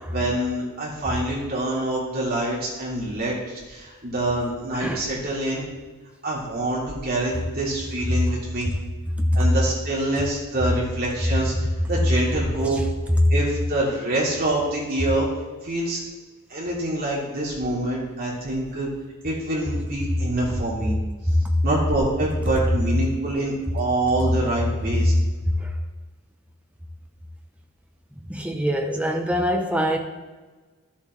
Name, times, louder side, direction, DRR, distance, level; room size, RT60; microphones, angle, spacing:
voice 1, 0.0-5.7 6.2-8.7 9.3-11.5 11.9-12.8 13.3-15.3 15.6-16.0 16.5-18.9 19.2-21.0 21.6-25.1, right 1 dB, 45° right, -5 dB, 2.8 m, -26 dB
voice 2, 28.3-30.0, equal, 5° right, 2 dB, 0.8 m, -24 dB
13.0 x 7.2 x 3.2 m, 1.3 s
head